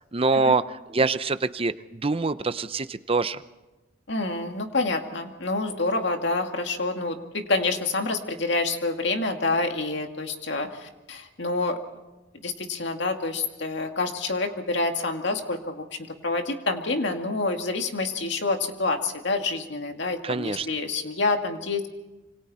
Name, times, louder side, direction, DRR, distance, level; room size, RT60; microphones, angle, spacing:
voice 1, 0.1-0.6 0.9-3.4 20.2-20.7, right 3 dB, 30° right, 13 dB, 0.7 m, -24 dB
voice 2, 4.1-11.8 12.4-15.8 16.2-21.9, left 3 dB, 65° left, 4 dB, 2.3 m, -27 dB
27.5 x 25.0 x 4.3 m, 1.0 s
head